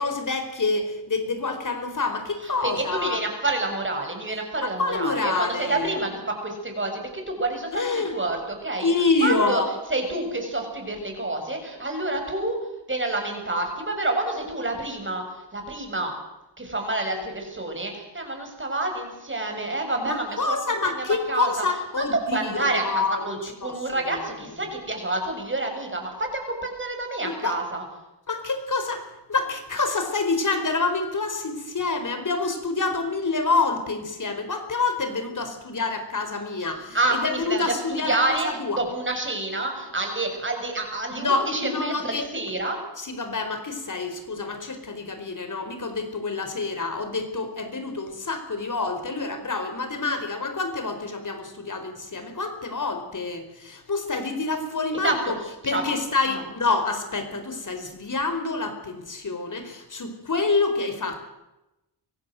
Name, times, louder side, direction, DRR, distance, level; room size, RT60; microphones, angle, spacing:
voice 1, 0.0-3.2 4.6-5.9 7.7-8.1 8.8-9.7 20.0-23.8 24.1-24.2 27.2-27.6 28.3-38.8 41.2-42.2 43.0-55.4 55.6-61.3, left 3 dB, 45° left, 8 dB, 4.8 m, -27 dB
voice 2, 2.4-9.6 9.9-12.6 12.9-16.1 16.6-20.6 20.8-21.6 22.0-22.1 22.3-27.8 36.9-38.5 38.7-42.8 55.0-55.8 56.3-56.4, right 2 dB, 25° right, 3 dB, 6.9 m, -28 dB
24.0 x 16.0 x 7.9 m, 0.95 s
cardioid pair, 75°, 43 cm